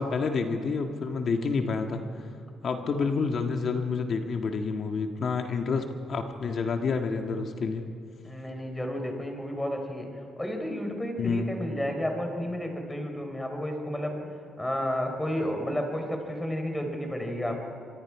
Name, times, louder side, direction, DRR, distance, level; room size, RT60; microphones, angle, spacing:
voice 1, 0.0-2.0 2.6-7.8 11.2-11.5, left 4 dB, 55° left, 5 dB, 1.7 m, -29 dB
voice 2, 8.2-10.1 10.4-17.7, equal, 10° left, 4 dB, 4.2 m, -32 dB
25.5 x 22.0 x 4.9 m, 2.3 s
cardioid pair, 90°, 0 cm